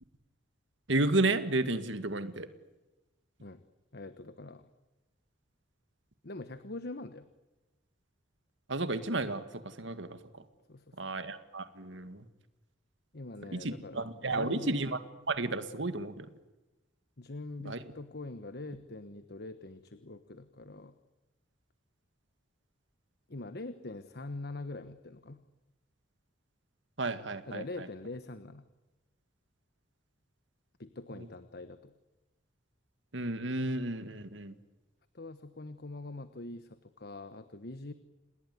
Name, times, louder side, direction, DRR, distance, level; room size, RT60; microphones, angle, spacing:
voice 1, 0.9-2.5 8.7-10.4 11.0-12.2 13.5-15.0 15.3-16.3 17.7-17.8 27.0-27.9 33.1-34.5, right 2 dB, 65° right, 11 dB, 2.0 m, -32 dB
voice 2, 3.9-4.7 6.2-7.3 10.7-11.1 13.1-14.8 17.2-20.9 23.3-25.4 27.5-28.6 30.8-31.9 35.1-37.9, left 2 dB, 55° left, 11 dB, 1.3 m, -43 dB
28.5 x 20.0 x 9.6 m, 1.1 s
head